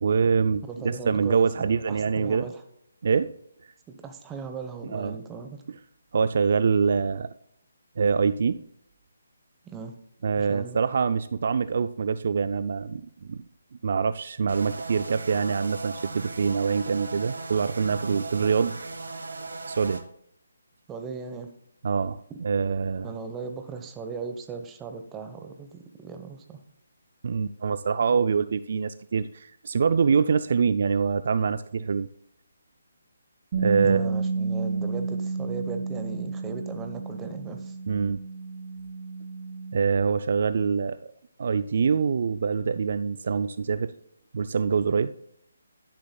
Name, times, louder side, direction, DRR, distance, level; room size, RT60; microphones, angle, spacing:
voice 1, 0.0-2.5 3.0-3.3 4.9-5.2 6.1-7.3 8.0-8.6 10.2-13.0 13.3-13.4 13.8-18.8 19.7-20.0 21.8-23.1 27.2-32.1 33.6-34.1 37.9-38.2 39.7-41.0 41.4-43.9 44.3-45.1, right 5 dB, 55° right, 13 dB, 0.4 m, -25 dB
voice 2, 0.6-2.6 3.9-5.6 9.6-10.0 10.4-10.8 20.9-21.5 22.3-22.4 23.0-26.6 33.8-37.8, right 5 dB, 15° right, 6 dB, 1.0 m, -38 dB
sound 1, 14.5-20.0, right 3 dB, 75° right, 1.4 m, -37 dB
Bass guitar, 33.5-39.8, right 4 dB, 35° right, 2.8 m, -31 dB
11.5 x 10.5 x 2.3 m, 0.72 s
figure-of-eight pair, 155°, 0 cm